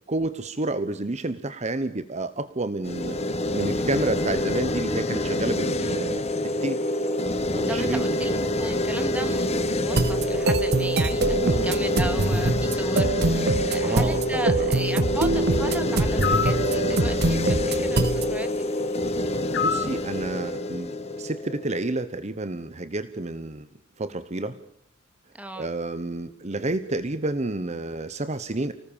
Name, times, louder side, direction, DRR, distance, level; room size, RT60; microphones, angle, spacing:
voice 1, 0.1-6.3 6.6-6.8 7.5-8.0 11.4-11.7 13.8-15.0 15.3-15.4 19.3-23.7 24.0-24.5 25.6-28.7, right 2 dB, 35° right, 12 dB, 1.0 m, -30 dB
sound 1, 2.8-21.9, left 1 dB, 30° left, 1.4 m, -27 dB
voice 2, 7.7-18.7 25.3-25.7, right 1 dB, 5° right, 7 dB, 2.3 m, -36 dB
sound 2, 9.9-18.3, right 2 dB, 55° right, 1.3 m, -24 dB
sound 3, 16.2-16.6 19.5-20.0, left 5 dB, 55° left, 1.1 m, -25 dB
30.0 x 19.0 x 7.3 m, 0.69 s
head